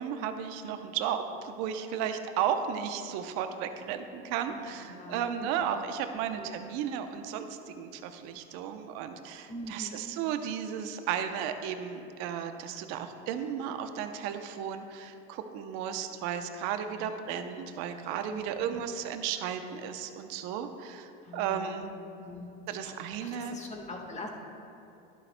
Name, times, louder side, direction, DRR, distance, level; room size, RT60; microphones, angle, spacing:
voice 1, 0.0-21.9 22.7-23.6, right 8 dB, 65° right, 8 dB, 0.8 m, -34 dB
voice 2, 4.5-5.5 6.3-6.6 9.5-10.0 16.9-17.1 18.3-18.8 21.2-21.8 22.2-22.9 23.2-24.3, left 1 dB, 25° left, 1 dB, 1.5 m, -44 dB
11.5 x 11.5 x 2.2 m, 2.7 s
hypercardioid pair, 90°, 29 cm